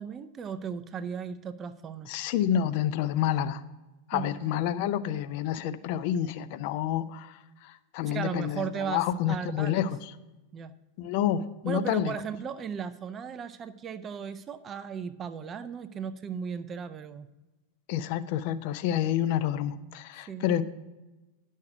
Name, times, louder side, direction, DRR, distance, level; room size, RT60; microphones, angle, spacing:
voice 1, 0.0-2.1 4.1-4.3 8.1-9.0 9.3-9.9 10.5-10.7 11.6-17.3 20.3-20.5, right 7 dB, 25° right, 11 dB, 0.5 m, -36 dB
voice 2, 2.1-3.6 4.1-10.1 11.0-12.2 17.9-20.6, left 10 dB, 45° left, 13 dB, 0.5 m, -29 dB
10.5 x 6.4 x 4.7 m, 1.1 s
figure-of-eight pair, 90°, 0 cm